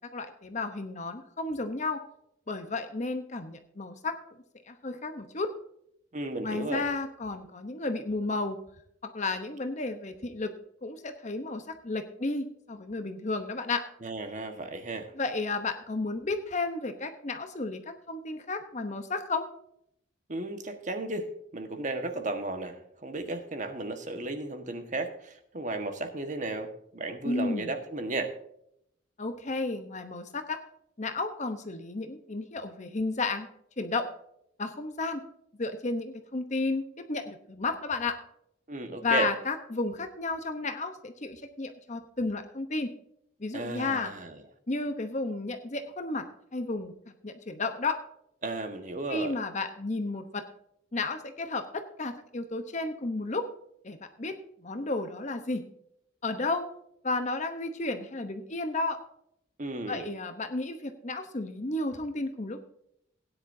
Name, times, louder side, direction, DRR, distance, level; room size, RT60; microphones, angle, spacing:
voice 1, 0.1-2.0 2.5-4.2 4.7-5.5 6.4-8.6 9.0-10.5 10.8-13.8 15.2-19.5 27.2-27.7 29.2-30.6 31.0-33.5 33.8-34.1 34.6-35.2 35.6-38.2 39.0-42.9 43.4-44.1 44.7-46.3 46.5-46.9 47.2-48.0 49.1-50.4 50.9-53.4 53.8-54.3 54.6-55.6 56.2-56.6 57.0-59.0 59.9-62.7, left 3 dB, 40° left, 7 dB, 0.9 m, -32 dB
voice 2, 6.1-6.8 14.0-15.1 20.3-28.3 38.7-39.3 43.5-44.4 48.4-49.4 59.6-60.1, right 2 dB, 40° right, 7 dB, 1.5 m, -34 dB
17.0 x 10.0 x 2.7 m, 0.75 s
head